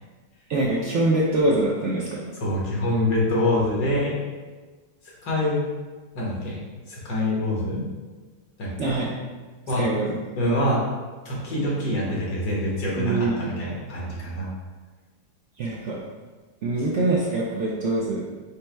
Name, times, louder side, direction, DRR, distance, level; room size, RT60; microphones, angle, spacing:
voice 1, 0.5-2.2 8.8-9.1 9.8-10.2 13.0-13.4 15.6-16.0 16.6-18.2, right 2 dB, 65° right, -5 dB, 0.7 m, -24 dB
voice 2, 2.4-4.2 5.2-5.7 6.2-6.6 6.9-7.8 8.6-9.0 9.7-9.8 10.4-10.8 11.3-14.5, left 1 dB, 75° left, -5 dB, 1.8 m, -25 dB
5.4 x 2.1 x 4.4 m, 1.3 s
omnidirectional pair, 1.8 m